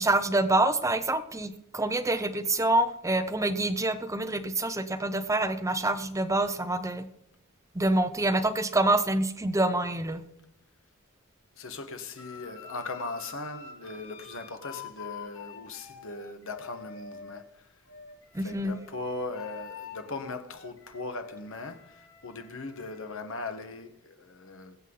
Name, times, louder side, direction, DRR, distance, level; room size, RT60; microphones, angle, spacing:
voice 1, 0.0-7.1 7.7-10.2 18.3-18.8, right 2 dB, 15° right, 0.7 m, -26 dB
voice 2, 11.6-17.7 18.4-24.8, left 3 dB, 60° left, 1.4 m, -39 dB
sound 1, 12.2-17.4 17.9-23.2, left 7 dB, 80° left, 5.8 m, -46 dB
22.5 x 8.0 x 3.9 m
head